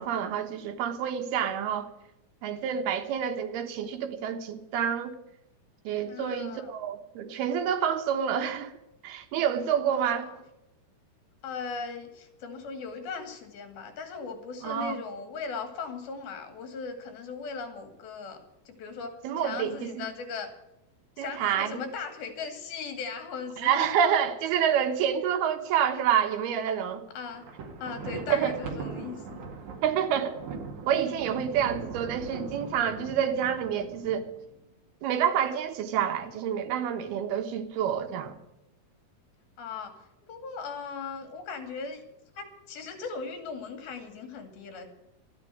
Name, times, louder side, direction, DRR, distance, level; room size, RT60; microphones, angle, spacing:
voice 1, 0.0-1.9 2.4-5.2 5.8-8.7 9.0-10.3 14.6-15.0 19.2-20.1 21.2-21.8 23.6-27.0 28.3-28.5 29.8-30.4 30.9-34.3 35.0-38.4, right 8 dB, 85° right, 3.2 m, -28 dB
voice 2, 6.1-6.7 9.9-10.4 11.4-18.4 18.7-20.5 21.2-23.9 27.1-27.5 27.8-29.4 39.6-39.9 40.3-42.0 42.3-44.9, left 5 dB, 75° left, 4.1 m, -38 dB
Thunder, 27.3-34.5, right 4 dB, 55° right, 3.1 m, -40 dB
13.5 x 9.7 x 9.2 m
omnidirectional pair, 4.3 m